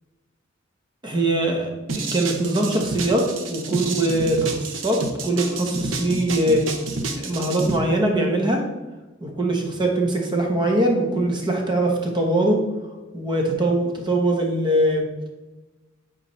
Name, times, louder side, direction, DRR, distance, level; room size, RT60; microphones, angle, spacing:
voice 1, 1.0-1.7 1.9-6.6 7.1-8.6 9.2-12.6 13.1-15.1, right 1 dB, 25° right, 1 dB, 1.1 m, -22 dB
sound 1, 1.9-7.8, right 3 dB, 80° right, 0.8 m, -29 dB
8.6 x 4.1 x 3.3 m, 1.1 s
head